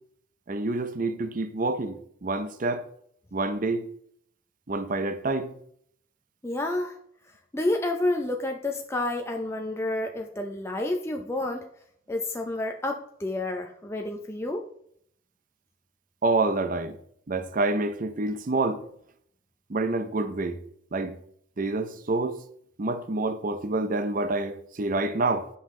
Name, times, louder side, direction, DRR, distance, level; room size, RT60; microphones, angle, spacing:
voice 1, 0.5-2.9 3.3-3.9 4.7-5.5 16.2-17.0 17.3-18.8 19.7-20.6 20.9-21.2 21.6-22.4 22.8-25.5, right 2 dB, 40° right, 0.6 m, -27 dB
voice 2, 6.4-6.9 7.5-11.6 12.1-14.7, left 2 dB, 15° left, 0.5 m, -29 dB
9.8 x 5.5 x 3.7 m
head